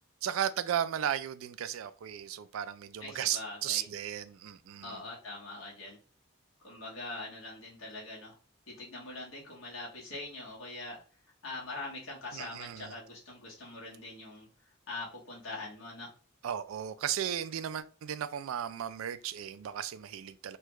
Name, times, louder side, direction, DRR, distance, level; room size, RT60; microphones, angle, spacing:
voice 1, 0.2-5.0 12.3-12.9 16.4-20.6, right 10 dB, 90° right, 0.3 m, -35 dB
voice 2, 3.0-3.8 4.8-6.0 6.6-8.3 8.7-11.0 11.4-14.5 14.9-16.1, left 2 dB, 90° left, 1.3 m, -43 dB
3.3 x 2.3 x 3.0 m
head